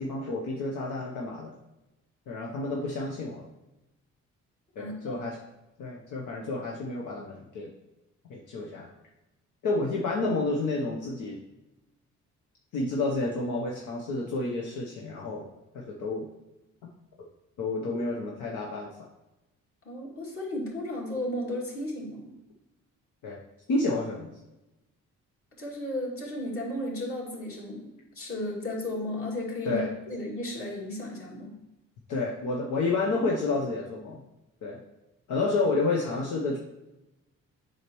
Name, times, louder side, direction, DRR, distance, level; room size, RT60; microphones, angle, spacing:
voice 1, 0.0-1.5 2.3-3.4 4.8-5.4 5.8-7.7 8.3-8.9 9.6-11.4 12.7-15.5 15.7-16.3 16.8-16.9 17.6-18.9 23.2-23.4 23.7-24.3 29.6-29.9 32.1-34.2 34.6-34.8 35.3-36.6, left 3 dB, 80° left, -2 dB, 1.0 m, -30 dB
voice 2, 4.8-5.2 19.8-22.3 25.6-29.8 30.1-31.6, left 1 dB, 45° left, -3 dB, 2.5 m, -34 dB
7.8 x 5.7 x 3.1 m, 0.97 s
cardioid pair, 90°, 30 cm